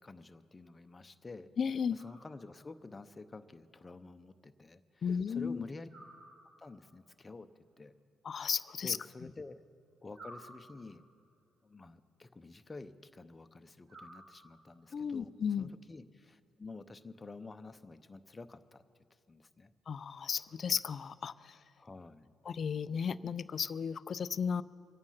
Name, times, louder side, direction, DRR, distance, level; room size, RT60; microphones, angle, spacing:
voice 1, 0.0-1.5 1.9-5.9 6.6-7.5 7.8-7.9 8.8-9.6 10.0-11.0 11.6-15.3 15.6-18.8 19.3-19.7 21.8-22.3, left 3 dB, 25° left, 10 dB, 0.7 m, -49 dB
voice 2, 1.6-2.0 5.0-5.6 8.2-9.0 14.9-15.7 19.9-21.6 22.5-24.6, left 6 dB, 50° left, 16 dB, 0.4 m, -34 dB
sound 1, 2.0-2.8 5.9-6.9 10.1-11.2 13.9-14.9, right 1 dB, 75° right, 4.3 m, -55 dB
25.0 x 8.9 x 5.7 m, 2.2 s
cardioid pair, 90°, 0 cm